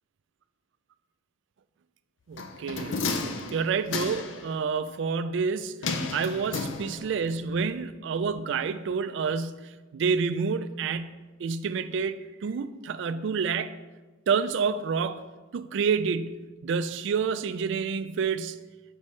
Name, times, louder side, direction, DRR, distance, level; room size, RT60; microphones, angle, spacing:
voice 1, 2.3-3.0 3.5-5.8 6.1-13.8 14.3-18.6, right 5 dB, 65° right, 0.3 m, -29 dB
sound 1, 2.4-4.5 5.8-7.3 7.6-7.7, left 4 dB, 75° left, 0.5 m, -32 dB
7.3 x 5.3 x 3.1 m
head